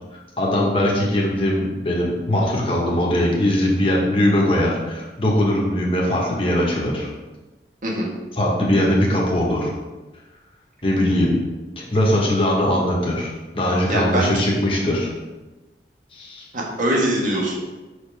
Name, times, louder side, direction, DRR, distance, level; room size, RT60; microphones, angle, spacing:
voice 1, 0.4-7.1 8.4-9.7 10.8-11.3 11.8-15.1 16.1-16.4, left 1 dB, 30° left, -3 dB, 1.3 m, -20 dB
voice 2, 13.9-14.4 16.5-17.6, right 1 dB, 45° right, -2 dB, 1.4 m, -22 dB
6.2 x 4.8 x 3.4 m, 1.1 s
head